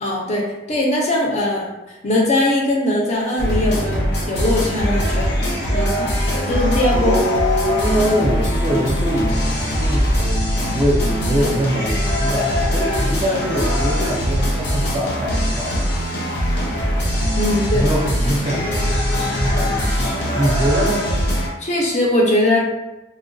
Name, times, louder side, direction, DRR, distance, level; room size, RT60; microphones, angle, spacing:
voice 1, 0.0-5.4 5.7-6.1 6.4-7.1 17.4-17.9 21.6-22.8, left 1 dB, 40° left, -2 dB, 0.5 m, -20 dB
sound 1, 3.4-21.5, equal, 80° left, 0.7 m, -21 dB
voice 2, 6.9-15.9 17.7-20.0 20.3-21.1, equal, 25° right, -2 dB, 0.4 m, -23 dB
2.9 x 2.1 x 2.5 m, 1.0 s
head